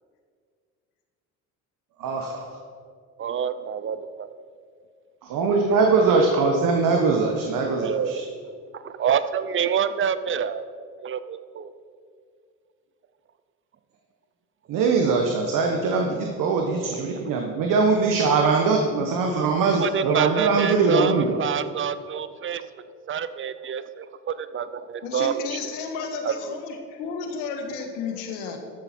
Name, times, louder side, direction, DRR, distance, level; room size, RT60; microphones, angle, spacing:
voice 1, 2.0-2.5 5.2-8.2 14.7-21.4, right 4 dB, 65° right, 2 dB, 1.2 m, -22 dB
voice 2, 3.2-4.3 7.7-8.2 8.7-10.6 11.0-11.7 19.6-22.6 23.1-25.6 26.2-26.6, right 8 dB, 35° right, 13 dB, 0.6 m, -27 dB
voice 3, 25.0-28.6, left 5 dB, 90° left, 4 dB, 1.5 m, -32 dB
13.0 x 7.2 x 4.4 m, 2.2 s
supercardioid pair, 90°, 36 cm